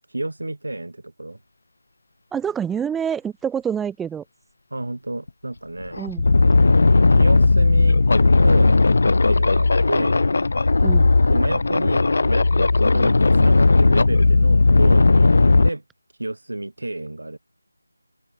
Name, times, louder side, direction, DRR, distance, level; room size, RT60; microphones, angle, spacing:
voice 1, 0.1-1.4 4.7-6.0 7.1-8.0 8.4-8.8 9.3-10.2 11.3-15.8 16.2-17.4, right 2 dB, 80° right, 4.4 m, -30 dB
voice 2, 2.3-4.2 6.0-6.2 10.8-11.1, right 8 dB, 5° right, 2.4 m, -26 dB
sound 1, 5.3-5.4 5.8-15.7, left 3 dB, 40° left, 2.1 m, -16 dB
open air
figure-of-eight pair, 175°, 0 cm